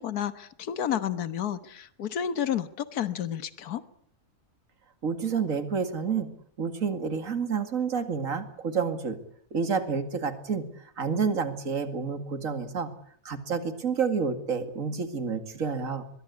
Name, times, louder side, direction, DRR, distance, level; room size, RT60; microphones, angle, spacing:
voice 1, 0.0-3.8, left 9 dB, 70° left, 12 dB, 1.8 m, -31 dB
voice 2, 5.0-6.3 6.6-9.2 9.5-12.9 13.2-16.0, right 5 dB, 55° right, 9 dB, 2.6 m, -29 dB
22.5 x 21.5 x 8.3 m, 0.62 s
omnidirectional pair, 1.7 m